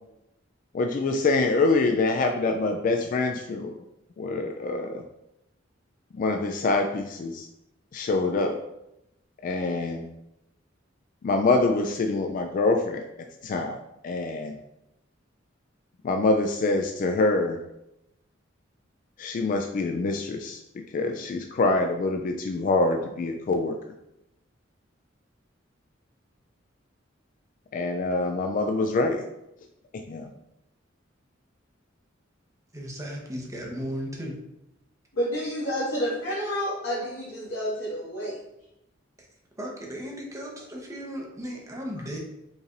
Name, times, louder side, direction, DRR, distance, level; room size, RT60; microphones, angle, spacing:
voice 1, 0.7-3.8 4.2-5.0 6.1-7.5 7.9-8.6 9.4-10.1 11.2-13.0 13.4-13.8 14.0-14.6 16.0-17.6 19.2-20.6 20.9-23.8 27.7-29.2 30.1-30.3, left 3 dB, 45° left, 4 dB, 0.3 m, -25 dB
voice 2, 32.7-34.4 39.6-42.2, equal, 15° right, -1 dB, 0.8 m, -35 dB
voice 3, 35.1-38.4, equal, 75° left, -9 dB, 1.5 m, -29 dB
5.1 x 3.2 x 2.5 m, 0.86 s
head